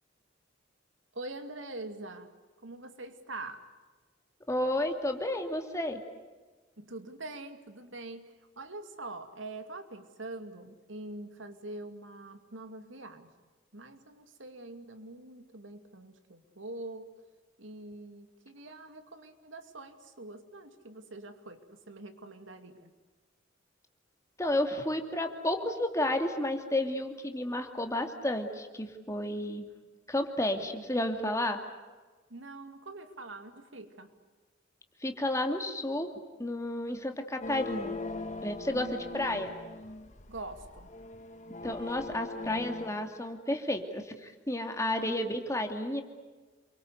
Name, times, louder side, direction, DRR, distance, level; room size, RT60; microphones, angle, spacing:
voice 1, 1.1-2.4 2.6-3.7 6.8-13.3 13.7-17.1 17.6-22.9 32.3-34.1 38.7-39.5 40.3-40.9 41.6-41.8 45.0-45.4, right 2 dB, 80° right, 8 dB, 2.5 m, -44 dB
voice 2, 4.5-6.0 24.4-29.7 30.1-31.6 35.0-36.1 36.4-38.0 38.4-39.5 41.6-46.0, left 1 dB, 15° left, 5 dB, 2.5 m, -31 dB
sound 1, 37.4-42.9, left 2 dB, 40° left, 1.4 m, -41 dB
28.5 x 23.5 x 8.2 m, 1.3 s
head